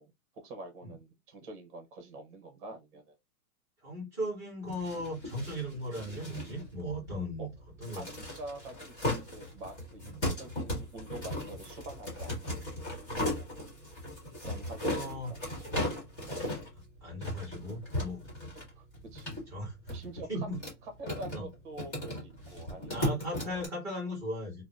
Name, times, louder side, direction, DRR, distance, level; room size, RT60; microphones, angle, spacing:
voice 1, 0.0-3.2 7.4-7.5 7.9-12.7 14.4-15.9 16.3-16.4 18.8-18.9 19.1-19.4 19.9-20.3 21.0-23.7, right 2 dB, 35° right, 0.8 m, -46 dB
voice 2, 3.8-7.5 7.8-8.1 10.0-10.2 13.1-13.4 14.8-15.3 17.0-18.2 19.5-19.8 20.2-20.6 21.3-21.5 22.9-24.6, equal, 5° right, 0.6 m, -37 dB
sound 1, 4.6-23.7, left 1 dB, 25° left, 1.2 m, -38 dB
3.5 x 2.1 x 2.4 m
hypercardioid pair, 170°, 45 cm